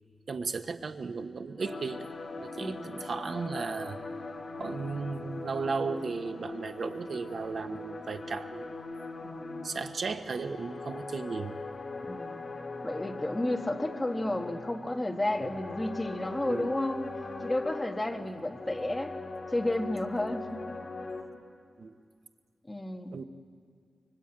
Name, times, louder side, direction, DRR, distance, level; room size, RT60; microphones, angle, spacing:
voice 1, 0.3-2.1 2.4-4.0 4.6-8.9 9.6-11.5 16.5-16.8 21.8-21.9 23.1-23.2, right 4 dB, 50° right, 7 dB, 1.1 m, -35 dB
sound 1, 1.6-21.2, left 3 dB, 35° left, 2.3 m, -41 dB
voice 2, 2.6-2.9 9.2-9.7 12.0-12.4 12.8-17.1 17.4-19.1 19.5-20.8 22.7-23.2, left 1 dB, 15° left, 4 dB, 1.4 m, -32 dB
25.0 x 23.5 x 8.9 m, 2.1 s
wide cardioid pair, 170°, 0 cm